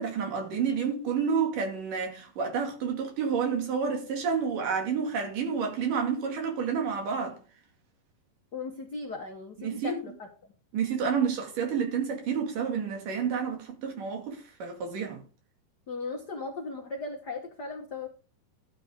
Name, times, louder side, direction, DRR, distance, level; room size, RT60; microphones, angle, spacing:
voice 1, 0.0-7.4 9.6-10.0 10.7-15.2, right 6 dB, 65° right, 3.7 m, -29 dB
voice 2, 8.5-10.3 15.9-18.1, left 3 dB, 75° left, 0.9 m, -37 dB
13.0 x 7.9 x 3.6 m
omnidirectional pair, 4.1 m